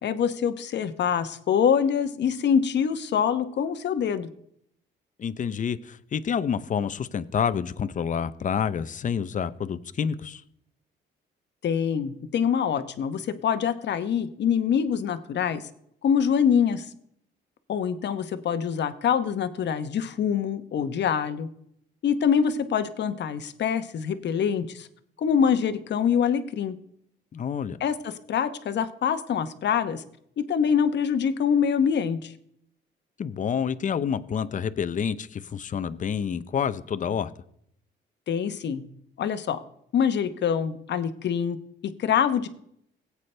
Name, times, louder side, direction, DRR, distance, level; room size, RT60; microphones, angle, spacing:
voice 1, 0.0-4.3 11.6-15.6 16.0-16.9 17.7-21.5 22.0-24.9 25.2-26.7 27.8-30.0 30.4-32.3 38.3-38.9 39.2-39.6 39.9-41.6 42.0-42.5, left 7 dB, 60° left, 11 dB, 1.0 m, -25 dB
voice 2, 5.2-10.4 27.3-27.8 33.2-37.3, left 7 dB, 40° left, 13 dB, 0.7 m, -28 dB
17.5 x 8.3 x 3.3 m, 0.71 s
cardioid pair, 90°, 20 cm